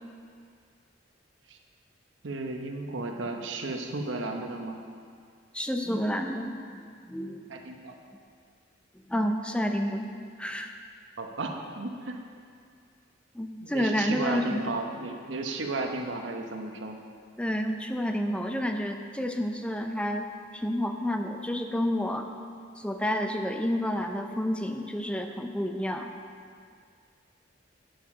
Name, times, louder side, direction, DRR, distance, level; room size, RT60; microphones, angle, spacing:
voice 1, 2.2-4.8 7.5-8.0 11.2-12.2 13.6-17.0, right 2 dB, 75° right, 3 dB, 0.9 m, -34 dB
voice 2, 5.5-7.4 9.1-10.1 10.4-10.7 13.3-14.6 17.4-22.3 22.8-26.1, equal, 5° left, 5 dB, 0.5 m, -30 dB
9.1 x 7.2 x 6.0 m, 2.2 s
head